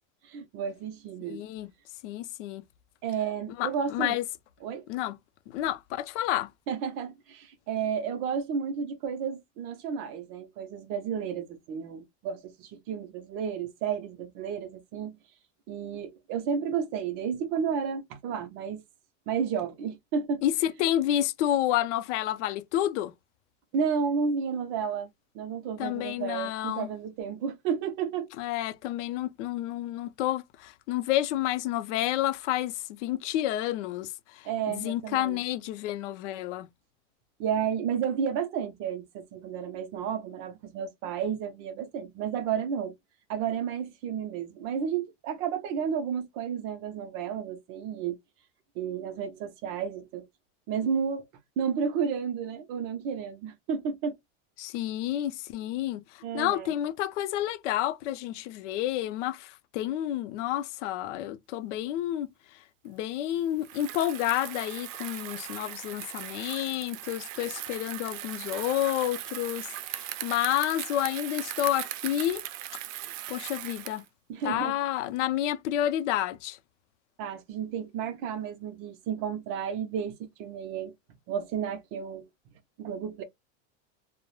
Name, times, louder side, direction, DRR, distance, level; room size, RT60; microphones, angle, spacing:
voice 1, 0.2-1.4 3.0-4.2 4.6-4.8 6.7-15.2 15.7-18.8 19.3-20.4 23.7-25.1 25.3-28.3 34.4-35.4 37.4-42.9 43.3-48.2 48.8-50.3 50.7-51.3 51.6-54.2 56.2-56.7 74.3-74.7 77.2-80.9 81.3-82.2 82.8-83.2, right 7 dB, 35° right, 0.5 m, -32 dB
voice 2, 1.2-1.7 2.0-2.6 3.6-4.2 4.9-5.2 5.5-6.5 20.4-23.1 25.8-26.9 28.4-32.7 33.0-36.7 54.6-56.0 56.3-62.3 62.8-72.4 73.3-74.0 74.4-76.6, left 13 dB, 70° left, 0.5 m, -30 dB
Bicycle, 63.6-74.1, right 13 dB, 90° right, 0.5 m, -39 dB
2.2 x 2.0 x 3.0 m
supercardioid pair, 155°, 37 cm